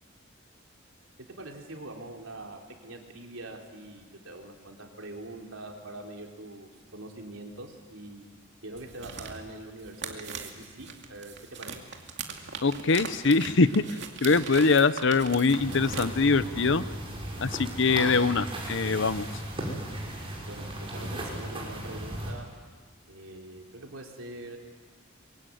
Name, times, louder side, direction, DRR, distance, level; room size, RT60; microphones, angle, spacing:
voice 1, 1.3-11.8 20.5-22.5 23.1-24.6, right 2 dB, 85° right, 1 dB, 3.8 m, -43 dB
sound 1, 8.7-16.1, right 5 dB, 60° right, 2.4 m, -40 dB
voice 2, 12.6-13.8 14.2-16.8 17.4-19.3, left 4 dB, 65° left, 14 dB, 0.9 m, -23 dB
sound 2, 15.5-22.3, right 1 dB, 25° right, 6.0 m, -36 dB
24.0 x 23.0 x 9.4 m, 1.5 s
head